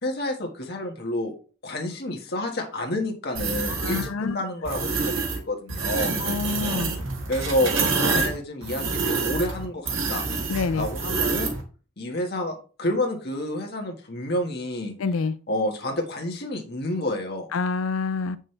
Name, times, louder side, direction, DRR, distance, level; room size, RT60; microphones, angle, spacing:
voice 1, 0.0-1.3 1.6-6.2 7.3-7.7 8.0-10.3 10.7-11.5 12.0-14.9 15.5-17.5, left 1 dB, 50° left, 1.5 m, -29 dB
sound 1, 3.3-4.1 4.6-5.4 5.7-11.6, right 4 dB, 75° right, 1.7 m, -27 dB
voice 2, 3.7-4.3 6.2-6.9 8.1-8.2 10.5-10.9 15.0-15.3 17.5-18.4, left 4 dB, 80° left, 0.4 m, -27 dB
7.6 x 6.4 x 3.2 m
head